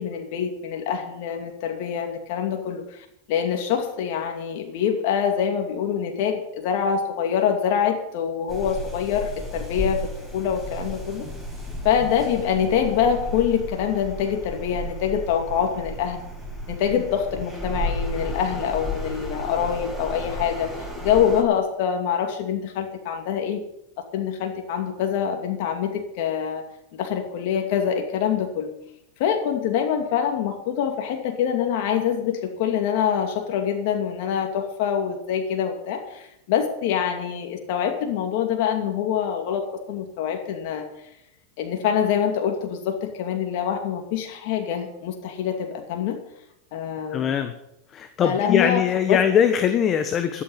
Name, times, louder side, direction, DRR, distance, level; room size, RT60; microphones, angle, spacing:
voice 1, 0.0-11.3 11.8-16.2 16.7-23.6 24.1-26.6 26.9-28.7 29.2-40.8 41.6-46.2 46.7-47.3 48.2-48.8 49.1-49.2, left 8 dB, 60° left, 3 dB, 2.6 m, -25 dB
sound 1, 8.5-21.4, equal, ahead, 6.7 m, -33 dB
voice 2, 47.1-47.5 47.9-50.4, left 8 dB, 35° left, 9 dB, 1.2 m, -21 dB
12.5 x 9.2 x 9.2 m, 0.82 s
hypercardioid pair, 110°, 0 cm